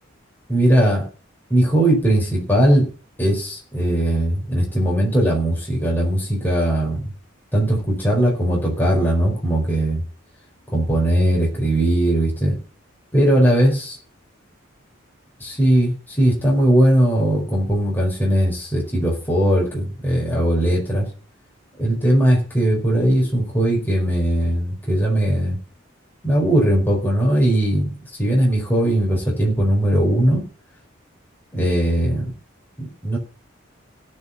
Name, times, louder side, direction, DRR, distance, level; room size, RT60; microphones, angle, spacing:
voice 1, 0.5-1.1 1.5-2.9 3.2-7.1 7.5-10.0 10.7-12.6 13.1-14.0 15.4-21.0 21.8-25.6 26.2-27.9 28.2-30.4 31.5-32.3 32.8-33.2, right 1 dB, 10° left, -3 dB, 4.8 m, -19 dB
17.0 x 5.7 x 7.2 m, 0.37 s
head